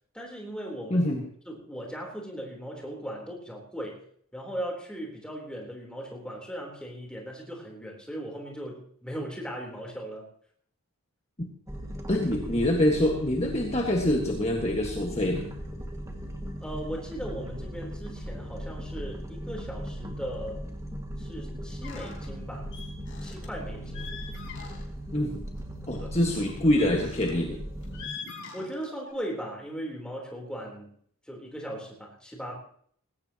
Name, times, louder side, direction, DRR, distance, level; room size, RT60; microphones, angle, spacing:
voice 1, 0.1-1.1 1.5-4.0 4.3-10.3 16.6-20.6 21.2-22.7 23.2-24.1 26.0-26.1 28.5-31.0 31.3-32.5, equal, 5° left, -1 dB, 3.6 m, -38 dB
voice 2, 0.9-1.2 11.4-11.5 12.1-15.5 25.1-25.3 25.9-27.6, left 1 dB, 30° left, 0 dB, 1.7 m, -25 dB
sound 1, 11.7-28.1, equal, 15° right, 2.0 m, -38 dB
sound 2, 21.8-22.3 22.7-23.5 23.8-25.0 25.3-25.6 26.3-27.4 27.8-29.1, left 5 dB, 60° left, 4.3 m, -43 dB
19.5 x 17.5 x 3.0 m, 0.62 s
head